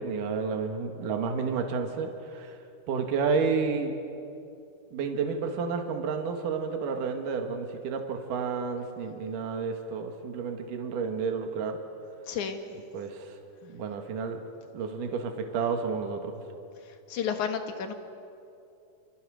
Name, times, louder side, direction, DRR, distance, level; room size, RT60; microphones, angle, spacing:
voice 1, 0.0-2.6 2.9-3.9 4.9-11.8 12.7-13.4 13.6-14.4 14.7-16.4, right 5 dB, 65° right, 4 dB, 3.3 m, -31 dB
voice 2, 12.3-12.6 17.1-17.9, left 7 dB, 60° left, 6 dB, 2.8 m, -31 dB
28.0 x 27.5 x 6.5 m, 2.7 s
omnidirectional pair, 4.1 m